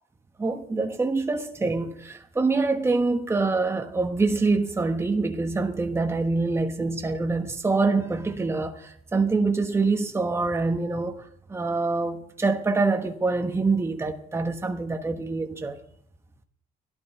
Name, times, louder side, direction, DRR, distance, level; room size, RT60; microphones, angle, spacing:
voice 1, 0.4-15.8, right 3 dB, 15° right, 1.3 m, -25 dB
16.0 x 12.0 x 4.6 m
cardioid pair, 110°, 17 cm